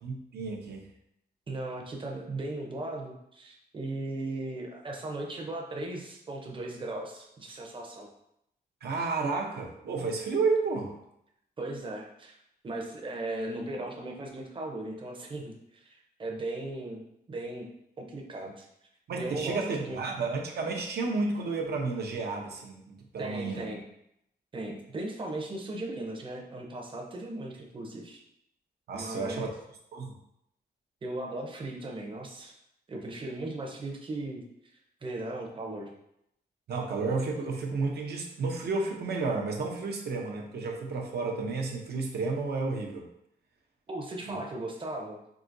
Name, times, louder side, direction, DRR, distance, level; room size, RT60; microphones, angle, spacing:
voice 1, 0.0-0.8 8.8-10.9 19.1-23.7 28.9-29.5 29.9-30.1 36.7-43.1 44.3-44.4, right 3 dB, 70° right, 1 dB, 0.7 m, -31 dB
voice 2, 1.5-8.1 11.6-12.4 12.6-17.7 18.0-18.7 19.2-20.0 23.2-23.8 24.5-28.2 28.9-29.5 31.0-32.5 32.9-34.4 35.0-35.9 43.9-45.2, right 2 dB, 30° right, 0 dB, 0.7 m, -37 dB
4.8 x 2.8 x 2.6 m, 0.78 s
wide cardioid pair, 150°, 17 cm